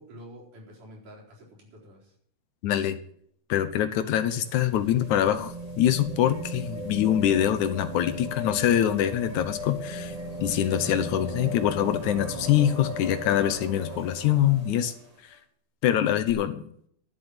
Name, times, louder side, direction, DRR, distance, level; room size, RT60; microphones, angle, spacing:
voice 1, 0.0-2.1, equal, 75° right, -3 dB, 5.5 m, -48 dB
voice 2, 2.6-3.0 3.5-10.1 10.4-14.9 15.8-16.6, left 11 dB, 75° left, 11 dB, 2.1 m, -24 dB
sound 1, 4.2-15.1 16.3-16.4, equal, 15° right, 1.6 m, -37 dB
11.5 x 7.4 x 9.5 m, 0.65 s
omnidirectional pair, 3.7 m